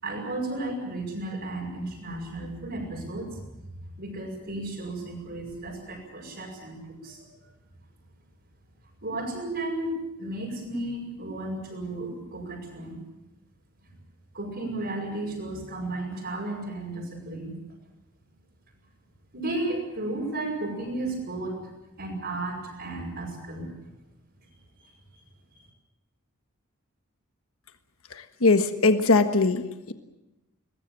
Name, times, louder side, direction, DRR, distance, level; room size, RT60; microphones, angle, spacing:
voice 1, 0.0-3.4 4.0-7.2 9.0-9.9 10.2-13.0 14.3-17.6 19.3-21.6 22.0-23.7 24.8-24.9, right 2 dB, 50° right, -5 dB, 6.6 m, -33 dB
voice 2, 28.4-29.6 29.9-30.0, left 3 dB, 70° left, 8 dB, 1.4 m, -20 dB
23.0 x 20.5 x 8.5 m, 0.97 s
head